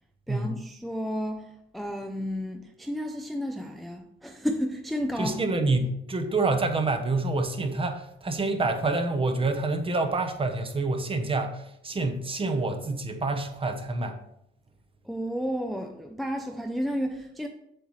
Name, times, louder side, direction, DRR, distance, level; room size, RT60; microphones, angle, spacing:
voice 1, 0.3-5.4 5.8-5.9 15.0-17.5, equal, ahead, 0.5 m, -32 dB
voice 2, 5.2-14.2, right 3 dB, 25° right, 0.9 m, -27 dB
7.8 x 7.0 x 3.2 m
cardioid pair, 125°, 20 cm